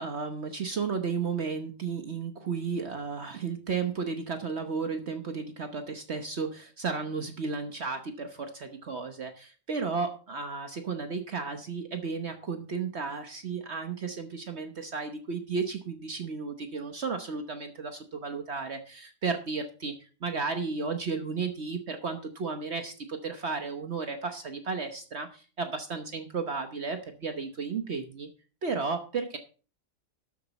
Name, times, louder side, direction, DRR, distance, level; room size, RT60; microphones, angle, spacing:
voice 1, 0.0-28.3 28.6-29.4, right 5 dB, 55° right, 6 dB, 1.3 m, -33 dB
12.5 x 8.1 x 4.1 m, 0.37 s
omnidirectional pair, 1.4 m